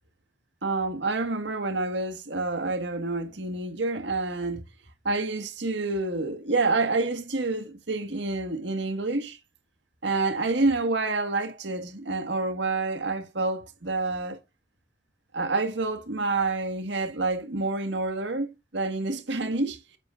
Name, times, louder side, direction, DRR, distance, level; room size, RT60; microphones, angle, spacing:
voice 1, 0.6-4.6 5.0-9.4 10.0-14.4 15.3-19.8, right 3 dB, 70° right, 1.7 m, -28 dB
8.7 x 7.5 x 2.5 m
head